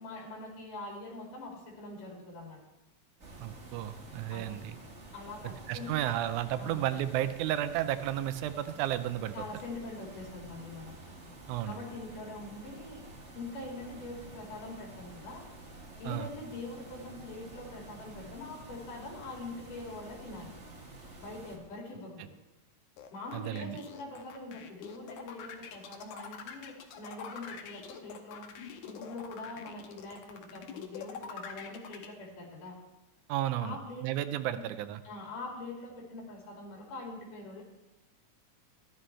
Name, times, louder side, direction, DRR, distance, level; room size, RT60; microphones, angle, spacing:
voice 1, 0.0-2.6 4.3-4.6 5.1-6.0 6.6-6.8 9.3-11.0 11.6-13.0 13.3-15.4 16.0-20.5 21.2-22.4 23.1-28.5 28.8-32.8 33.6-34.0 34.5-34.7 35.0-37.6, left 2 dB, 90° left, -2 dB, 4.1 m, -43 dB
sound 1, 3.2-21.6, right 2 dB, 35° right, 1.2 m, -50 dB
voice 2, 3.4-4.7 5.7-9.3 11.5-11.8 16.1-16.3 23.3-23.8 33.3-35.0, right 12 dB, 80° right, 12 dB, 2.0 m, -33 dB
sound 2, 23.0-32.1, left 7 dB, 75° left, 2.2 m, -45 dB
14.0 x 11.5 x 3.3 m, 1.0 s
omnidirectional pair, 3.6 m